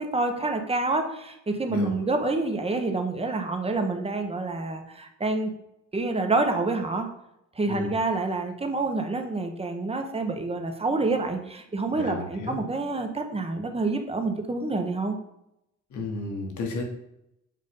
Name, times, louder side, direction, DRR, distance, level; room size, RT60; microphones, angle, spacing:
voice 1, 0.0-5.5 5.9-7.1 7.6-15.2, right 3 dB, 20° right, 5 dB, 1.0 m, -27 dB
voice 2, 11.9-12.6 15.9-16.9, left 2 dB, 75° left, 1 dB, 1.7 m, -33 dB
7.5 x 2.6 x 5.3 m, 0.82 s
cardioid pair, 90°, 30 cm